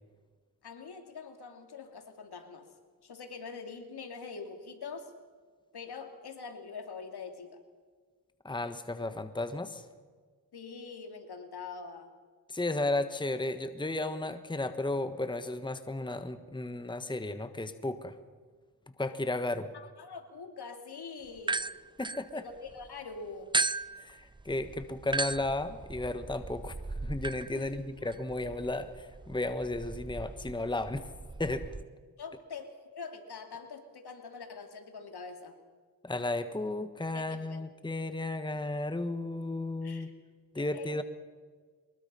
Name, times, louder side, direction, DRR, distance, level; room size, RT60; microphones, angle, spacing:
voice 1, 0.6-2.7 3.0-5.1 5.7-7.6 10.5-12.1 19.7-21.7 22.3-23.5 27.5-27.7 32.2-35.6 37.1-37.6 39.8-40.1 40.6-41.0, left 5 dB, 70° left, 5 dB, 3.0 m, -44 dB
voice 2, 8.4-9.8 12.5-18.1 19.0-19.7 22.0-22.4 24.0-26.7 27.0-31.1 31.4-31.7 36.0-40.1 40.5-41.0, left 2 dB, 10° left, 10 dB, 1.3 m, -34 dB
sound 1, 21.4-22.9 23.5-31.8, right 3 dB, 10° right, 0.5 m, -37 dB
23.0 x 21.0 x 5.6 m, 1.5 s
cardioid pair, 60°, 41 cm